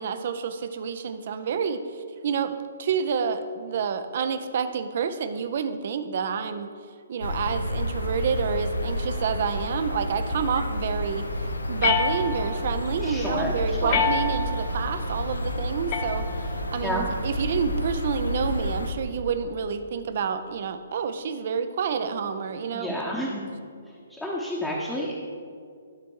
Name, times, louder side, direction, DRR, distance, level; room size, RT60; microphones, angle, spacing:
voice 1, 0.0-6.7 7.1-11.3 11.7-16.3 16.7-22.9, right 6 dB, 50° right, 10 dB, 0.5 m, -28 dB
sound 1, 7.2-18.9, equal, 85° left, 0.8 m, -30 dB
sound 2, 11.8-12.7 13.9-14.7 15.9-16.7, left 5 dB, 35° left, 0.8 m, -27 dB
voice 2, 13.0-13.5 13.8-14.0 16.8-17.1 22.7-23.5 24.1-25.1, left 1 dB, 5° left, -4 dB, 0.9 m, -30 dB
12.0 x 4.3 x 4.7 m, 2.2 s
figure-of-eight pair, 130°, 0 cm